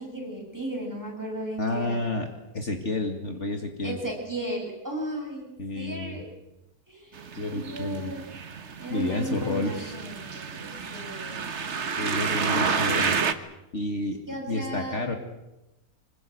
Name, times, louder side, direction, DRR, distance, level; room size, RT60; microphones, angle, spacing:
voice 1, 0.0-2.0 3.8-6.3 6.9-8.2 8.8-11.4 12.0-12.7 14.3-15.0, right 1 dB, 10° right, 0 dB, 7.0 m, -35 dB
voice 2, 1.6-2.3 2.5-4.0 5.6-6.2 7.4-8.1 8.9-10.0 10.7-10.9 12.0-13.2 13.7-14.2 14.5-15.2, left 2 dB, 50° left, 4 dB, 2.5 m, -30 dB
sound 1, 7.2-13.3, right 5 dB, 50° right, 1.5 m, -30 dB
25.5 x 22.0 x 8.0 m, 0.95 s
omnidirectional pair, 1.6 m